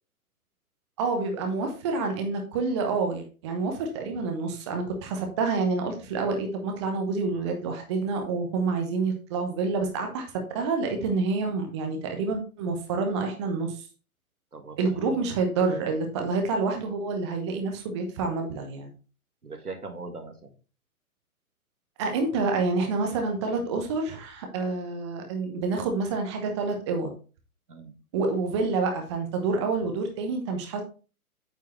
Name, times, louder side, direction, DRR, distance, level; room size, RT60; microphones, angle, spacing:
voice 1, 1.0-10.3 10.5-13.8 14.8-18.9 22.0-27.1 28.1-30.8, right 4 dB, 20° right, 4 dB, 0.9 m, -28 dB
voice 2, 14.5-15.2 19.4-20.5 27.7-27.9, right 3 dB, 85° right, 6 dB, 1.7 m, -40 dB
8.7 x 5.1 x 3.2 m, 0.36 s
figure-of-eight pair, 135°, 44 cm